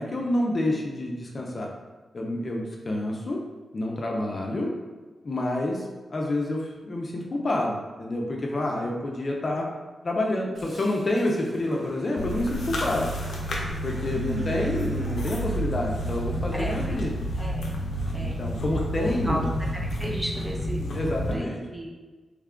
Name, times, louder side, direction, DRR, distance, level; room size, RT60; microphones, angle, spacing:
voice 1, 0.0-1.7 2.1-3.4 3.7-4.7 5.2-5.8 6.1-9.7 10.0-13.1 13.8-17.1 18.2-19.5 20.9-21.6, left 1 dB, 40° left, -1 dB, 0.5 m, -28 dB
Growling, 10.5-17.2, right 1 dB, 65° right, 1.2 m, -46 dB
biting into apple, 12.2-21.3, equal, 85° left, 0.6 m, -30 dB
voice 2, 14.1-14.6 16.5-17.0 17.4-17.8 18.1-18.4 19.2-19.4 20.0-21.9, equal, 10° right, -2 dB, 0.5 m, -34 dB
3.2 x 2.3 x 3.6 m, 1.3 s
wide cardioid pair, 105°, 0 cm